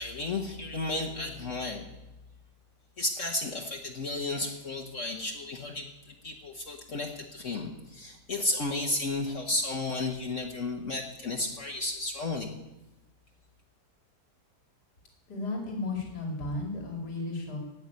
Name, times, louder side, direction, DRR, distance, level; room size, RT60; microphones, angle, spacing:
voice 1, 0.0-1.8 3.0-12.5, left 2 dB, 50° left, 2 dB, 1.5 m, -33 dB
voice 2, 15.3-17.6, left 2 dB, 75° left, 1 dB, 3.2 m, -34 dB
17.5 x 6.0 x 9.4 m, 1.0 s
omnidirectional pair, 1.8 m